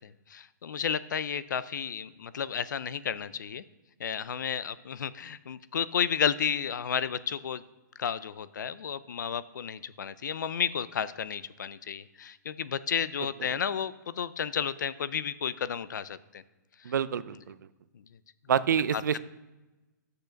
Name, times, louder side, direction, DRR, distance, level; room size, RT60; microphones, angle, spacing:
voice 1, 0.0-3.6 4.0-7.6 8.0-16.4 18.9-19.2, left 8 dB, 70° left, 17 dB, 0.5 m, -32 dB
voice 2, 16.8-17.5 18.5-19.2, right 8 dB, 70° right, 17 dB, 0.4 m, -27 dB
8.1 x 6.7 x 5.1 m, 1.1 s
hypercardioid pair, 175°, 10 cm